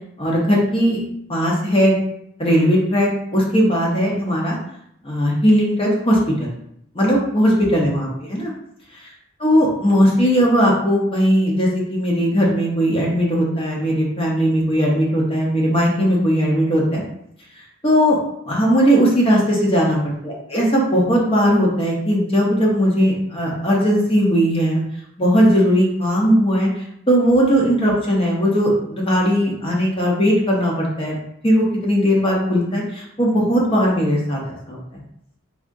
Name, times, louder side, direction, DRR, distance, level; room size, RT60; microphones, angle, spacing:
voice 1, 0.2-1.0 1.3-2.0 2.4-4.6 5.0-6.5 6.9-8.5 9.4-17.0 17.8-18.2 18.4-20.0 20.2-24.8 25.2-31.2 31.4-35.0, equal, 25° left, -3 dB, 0.6 m, -18 dB
3.5 x 2.7 x 2.5 m, 0.74 s
head